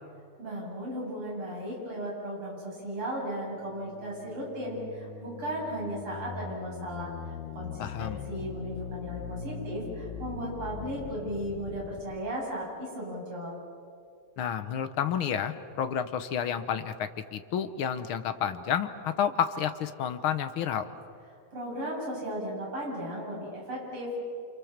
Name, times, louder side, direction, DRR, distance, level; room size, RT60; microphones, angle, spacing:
voice 1, 0.4-7.1 7.6-13.6 21.5-24.3, equal, 45° right, -3 dB, 8.8 m, -36 dB
sound 1, 3.4-12.1, left 6 dB, 90° left, 3.0 m, -41 dB
voice 2, 7.8-8.2 14.4-20.9, left 8 dB, 60° left, 10 dB, 1.5 m, -30 dB
29.0 x 27.5 x 7.4 m, 2.4 s
omnidirectional pair, 3.3 m